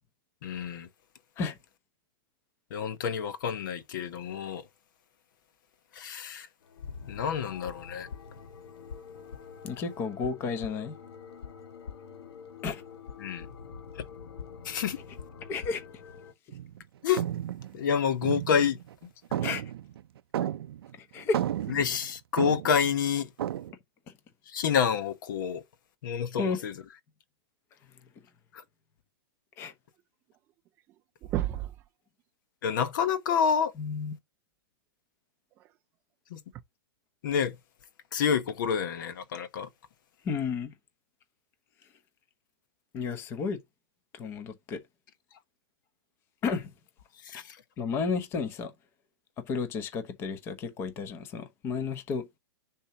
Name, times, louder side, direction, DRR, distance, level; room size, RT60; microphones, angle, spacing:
voice 1, 0.4-0.9 2.7-4.7 5.9-6.5 7.1-8.1 13.2-13.5 14.6-15.0 17.0-17.2 17.7-19.1 21.7-23.3 24.5-25.6 26.0-26.7 28.5-28.6 32.6-33.7 36.3-36.4 37.2-37.5 38.1-39.7 47.2-47.6, left 7 dB, 50° left, 1.0 m, -28 dB
sound 1, 6.6-16.3, left 6 dB, 80° left, 1.5 m, -45 dB
voice 2, 9.6-10.9 12.6-12.8 15.5-15.8 19.4-19.6 21.0-21.4 24.1-24.2 26.4-26.6 29.6-29.7 33.8-34.1 40.2-40.7 42.9-43.6 44.1-44.8 46.4-46.7 47.8-48.7 49.4-52.4, left 5 dB, 20° left, 0.9 m, -32 dB
sound 2, 16.5-16.8 17.2-19.0 19.3-20.9 21.2-22.9 23.4-23.7, right 11 dB, 70° right, 0.6 m, -33 dB
sound 3, 30.3-30.4 30.7-30.9 31.2-31.9 33.6-33.7 35.5-35.7 36.5-36.6, right 13 dB, 15° right, 0.3 m, -32 dB
6.9 x 2.8 x 5.8 m
supercardioid pair, 170°, 13 cm